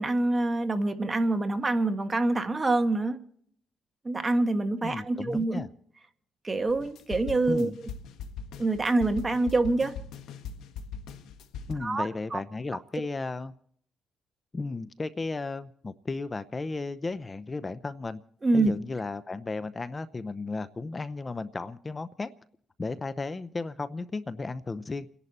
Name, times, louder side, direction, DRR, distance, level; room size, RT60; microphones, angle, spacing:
voice 1, 0.0-3.2 4.0-5.6 6.4-7.9 8.6-9.9 11.8-12.4 18.4-18.7, right 2 dB, 25° right, 7 dB, 1.6 m, -26 dB
voice 2, 4.8-5.7 7.5-7.8 11.7-13.5 14.5-18.2 18.5-22.3 22.8-25.1, left 3 dB, 25° left, 14 dB, 0.6 m, -34 dB
sound 1, 6.7-11.7, left 6 dB, 85° left, 1.4 m, -40 dB
30.0 x 11.0 x 4.2 m, 0.64 s
cardioid pair, 90°, 0 cm